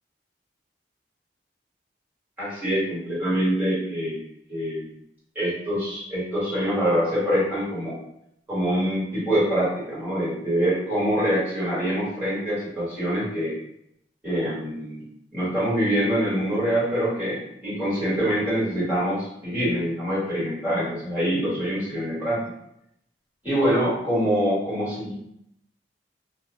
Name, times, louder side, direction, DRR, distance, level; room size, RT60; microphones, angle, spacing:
voice 1, 2.4-4.2 4.5-4.9 5.3-7.9 8.5-13.5 14.2-15.0 15.3-22.4 23.4-25.1, equal, 10° right, -11 dB, 1.3 m, -25 dB
2.4 x 2.1 x 3.0 m, 0.77 s
head